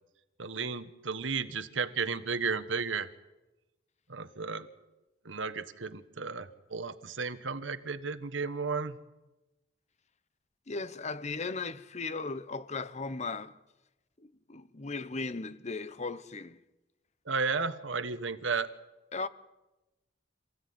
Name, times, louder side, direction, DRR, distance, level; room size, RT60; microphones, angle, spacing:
voice 1, 0.4-3.1 4.1-4.7 5.2-9.0 17.3-18.7, right 5 dB, 85° right, 1.3 m, -33 dB
voice 2, 10.7-13.5 14.2-16.6 19.1-19.3, left 3 dB, 35° left, 1.0 m, -37 dB
27.0 x 16.0 x 9.5 m
head